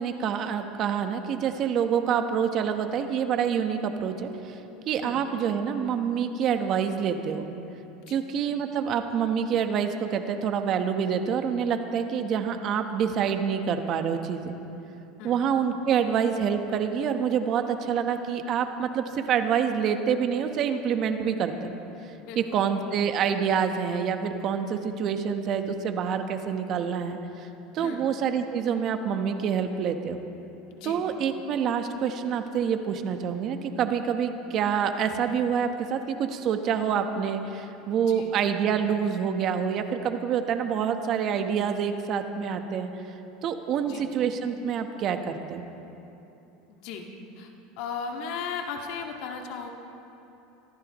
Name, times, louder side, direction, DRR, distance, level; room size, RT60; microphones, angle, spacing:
voice 1, 0.0-4.6 4.9-7.4 8.1-14.5 15.2-21.7 22.4-27.5 27.7-30.2 30.8-42.9 43.4-45.6, right 7 dB, 45° right, 7 dB, 1.2 m, -27 dB
voice 2, 22.2-22.7 27.8-28.1 30.7-31.0 38.0-38.3 43.8-44.1 46.7-47.1 47.4-49.7, left 6 dB, 65° left, 2 dB, 1.9 m, -37 dB
23.5 x 14.5 x 3.1 m, 3.0 s
supercardioid pair, 115°, 0 cm